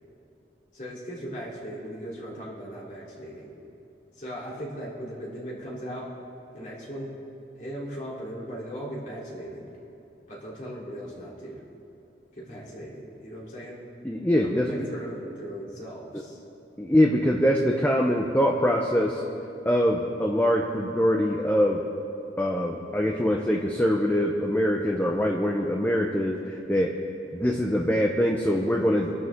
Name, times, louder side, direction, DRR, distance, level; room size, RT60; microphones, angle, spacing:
voice 1, 0.7-3.5 4.1-6.1 6.5-7.2 7.6-9.7 10.3-11.6 12.3-13.8 14.4-16.4, equal, 45° left, -6 dB, 3.8 m, -38 dB
voice 2, 14.0-14.9 16.8-19.2 19.6-21.8 22.4-26.9 27.3-29.1, equal, 10° left, 1 dB, 0.8 m, -23 dB
25.5 x 12.0 x 3.8 m, 2.8 s
head